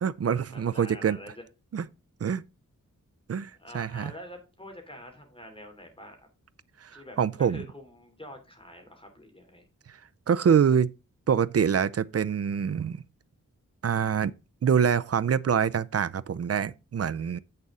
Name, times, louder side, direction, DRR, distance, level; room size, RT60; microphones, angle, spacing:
voice 1, 0.0-1.2 1.7-1.9 2.2-2.4 3.3-4.1 6.8-7.6 10.3-10.9 11.3-13.0 13.8-14.3 14.6-17.4, right 7 dB, 50° right, 0.5 m, -25 dB
voice 2, 0.5-1.4 3.6-6.2 6.9-9.7, left 1 dB, 15° left, 3.0 m, -46 dB
8.2 x 6.7 x 3.7 m
wide cardioid pair, 100°, 32 cm